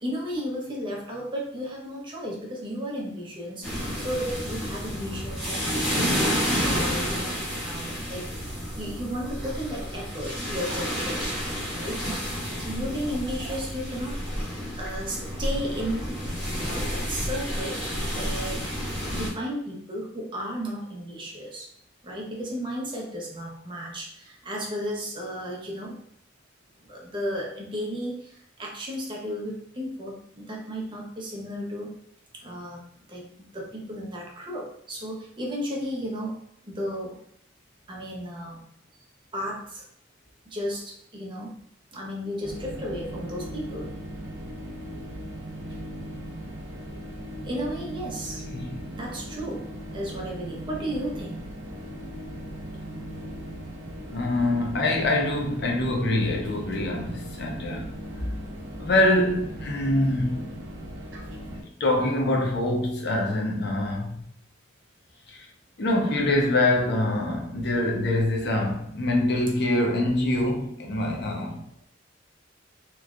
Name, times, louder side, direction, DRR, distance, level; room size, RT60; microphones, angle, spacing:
voice 1, 0.0-12.0 12.6-14.2 14.7-16.2 16.6-17.9 18.1-18.7 19.1-21.7 22.0-26.0 26.8-32.0 32.3-36.3 36.6-37.2 37.9-38.6 39.3-39.8 40.5-41.6 41.9-43.9 47.4-48.5 48.9-51.5, equal, 25° right, 0.7 m, -34 dB
sound 1, 3.6-19.3, equal, ahead, 1.5 m, -30 dB
sound 2, 42.4-61.6, equal, 65° right, 0.7 m, -38 dB
voice 2, 54.1-57.9 58.8-60.4 61.6-64.2 65.3-65.5 65.8-71.6, left 1 dB, 60° left, 0.6 m, -24 dB
3.2 x 3.1 x 2.4 m
head